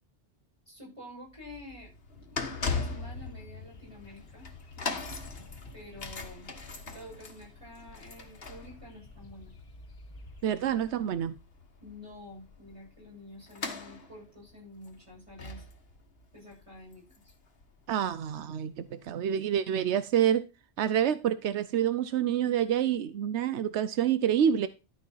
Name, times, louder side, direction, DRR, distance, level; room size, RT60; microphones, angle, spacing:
voice 1, 0.7-1.9 2.2-4.5 4.7-5.1 5.7-6.5 6.8-9.5 11.8-15.6 16.3-17.3, left 1 dB, 30° right, -5 dB, 7.7 m, -49 dB
sound 1, 1.3-18.3 18.9-19.0, left 4 dB, 60° left, 1.7 m, -41 dB
sound 2, 2.7-10.8, left 3 dB, 35° left, 1.5 m, -53 dB
voice 2, 10.4-11.3 17.9-20.5 20.8-24.7, right 9 dB, 90° right, 13 dB, 1.0 m, -27 dB
12.5 x 5.4 x 5.6 m, 0.29 s
omnidirectional pair, 1.1 m